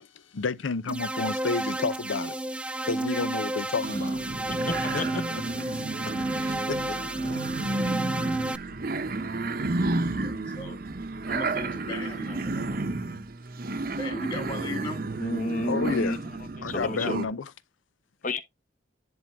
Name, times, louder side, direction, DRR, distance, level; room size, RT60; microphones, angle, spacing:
voice 1, 0.0-2.4 2.9-4.2 4.9-5.0 6.7-7.0 15.7-16.2 16.6-17.5, left 4 dB, 90° left, 0.7 m, -30 dB
sound 1, 0.9-8.6, right 1 dB, 5° right, 0.3 m, -31 dB
sound 2, 3.8-17.2, right 2 dB, 50° right, 0.8 m, -32 dB
voice 2, 4.6-5.2 7.2-7.4 7.7-7.9 15.2-16.2 16.6-17.2 18.2-18.4, left 1 dB, 40° left, 1.1 m, -31 dB
voice 3, 10.1-10.8 11.3-12.9 13.5-15.1, left 1 dB, 25° left, 2.7 m, -38 dB
10.5 x 3.7 x 3.5 m
head